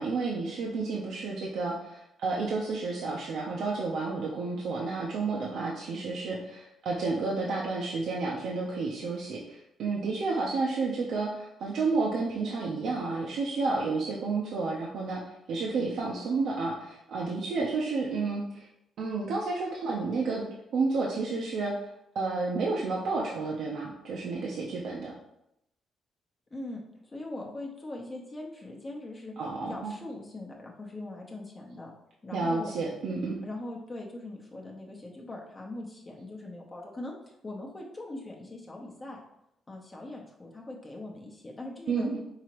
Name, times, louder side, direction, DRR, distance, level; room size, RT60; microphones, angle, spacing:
voice 1, 0.0-15.2 15.5-18.7 19.0-20.4 20.7-21.7 22.1-25.1 29.4-29.9 32.3-33.4 41.9-42.2, right 3 dB, 70° right, -3 dB, 0.6 m, -31 dB
voice 2, 26.5-29.3 29.6-31.9 32.2-32.7 33.4-37.1 37.4-39.2 39.7-42.1, left 2 dB, 25° left, -1 dB, 0.8 m, -41 dB
4.8 x 2.9 x 2.9 m, 0.82 s
cardioid pair, 90°, 0 cm